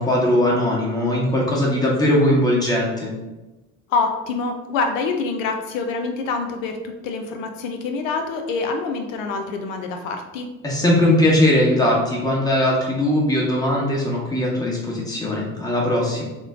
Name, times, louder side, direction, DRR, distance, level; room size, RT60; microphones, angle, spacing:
voice 1, 0.0-3.1 10.6-16.2, left 1 dB, 10° left, -4 dB, 1.1 m, -19 dB
voice 2, 3.9-10.5, left 4 dB, 75° left, 5 dB, 0.5 m, -26 dB
3.1 x 2.2 x 3.6 m, 1.1 s
hypercardioid pair, 55°, 39 cm